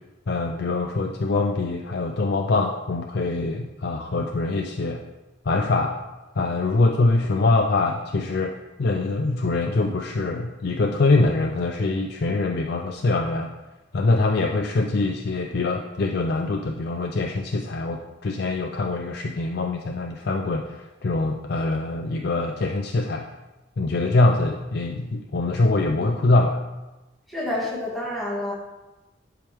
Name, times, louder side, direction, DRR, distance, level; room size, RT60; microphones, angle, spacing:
voice 1, 0.3-5.0 5.5-6.0 6.4-13.5 13.9-23.3 23.8-26.6, left 2 dB, 55° left, 2 dB, 0.4 m, -23 dB
voice 2, 27.3-28.5, left 1 dB, ahead, -7 dB, 1.9 m, -28 dB
10.5 x 4.8 x 3.4 m, 1.1 s
head